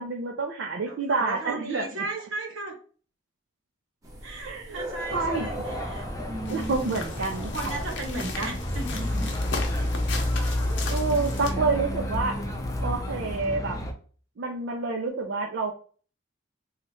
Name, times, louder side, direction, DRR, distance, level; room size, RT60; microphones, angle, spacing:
voice 1, 0.0-2.1 4.4-5.5 6.5-7.5 10.9-12.4 12.8-13.8 14.4-15.7, right 3 dB, 70° right, 1 dB, 0.5 m, -28 dB
voice 2, 0.8-2.7 4.2-6.9 7.4-9.3 10.8-11.0 12.3-12.5, right 2 dB, 85° right, 1 dB, 1.2 m, -36 dB
sound 1, 4.0-13.4, right 1 dB, 20° right, 0.8 m, -42 dB
sound 2, 5.1-13.9, left 1 dB, 15° left, 0.4 m, -30 dB
sound 3, 6.4-11.5, left 3 dB, 65° left, 0.7 m, -37 dB
3.1 x 2.4 x 4.2 m, 0.41 s
head